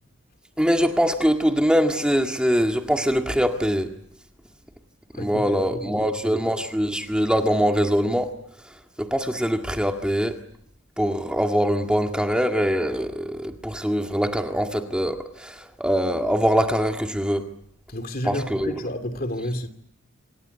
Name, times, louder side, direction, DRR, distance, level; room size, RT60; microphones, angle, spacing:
voice 1, 0.6-3.9 5.2-8.3 9.0-10.4 11.0-17.4 18.3-18.7, equal, 5° right, 1.9 m, -23 dB
voice 2, 5.1-6.5 17.9-19.7, left 1 dB, 50° left, 2.8 m, -31 dB
27.5 x 26.0 x 8.2 m
head